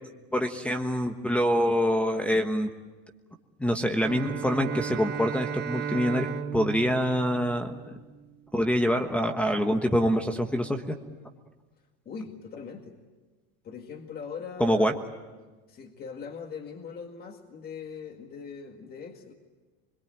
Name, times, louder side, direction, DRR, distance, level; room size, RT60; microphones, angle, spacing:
voice 1, 0.3-2.7 3.6-7.8 8.5-11.0 14.6-14.9, equal, 5° left, 6 dB, 1.3 m, -25 dB
Bowed string instrument, 3.9-8.3, right 8 dB, 30° right, 1.1 m, -35 dB
voice 2, 12.1-13.0 13.6-15.0 15.7-19.3, left 6 dB, 30° left, 3 dB, 2.0 m, -40 dB
25.5 x 22.0 x 9.0 m, 1.2 s
cardioid pair, 150°, 31 cm